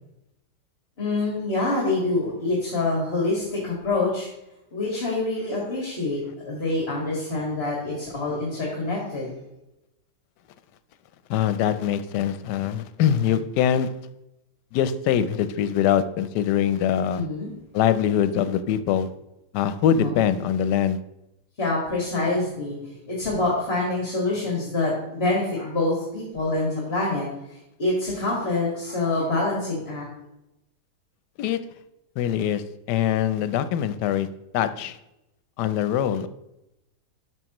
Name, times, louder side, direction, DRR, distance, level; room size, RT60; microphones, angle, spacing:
voice 1, 1.0-4.3 4.7-9.3 17.1-17.5 19.9-20.1 21.6-22.8 23.1-30.1, left 2 dB, 40° left, -4 dB, 2.0 m, -26 dB
voice 2, 11.3-13.9 14.7-17.2 17.7-19.1 19.5-21.0 31.4-31.6 32.2-34.3 34.5-35.0 35.6-36.3, left 9 dB, 85° left, 13 dB, 1.2 m, -23 dB
11.0 x 6.1 x 3.0 m, 0.91 s
omnidirectional pair, 1.8 m